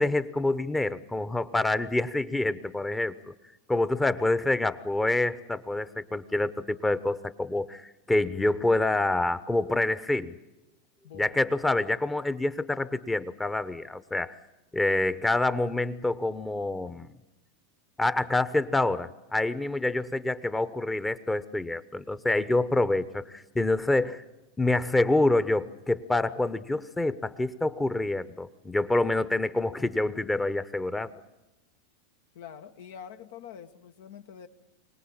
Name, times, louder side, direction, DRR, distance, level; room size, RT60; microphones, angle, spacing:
voice 1, 0.0-3.3 3.7-10.4 11.1-14.4 14.7-17.1 18.0-24.2 24.6-31.1, left 2 dB, 10° left, 14 dB, 0.9 m, -27 dB
voice 2, 11.0-11.5 32.3-34.5, left 8 dB, 75° left, 8 dB, 1.6 m, -45 dB
24.5 x 18.5 x 8.8 m, 0.97 s
hypercardioid pair, 115°, 0 cm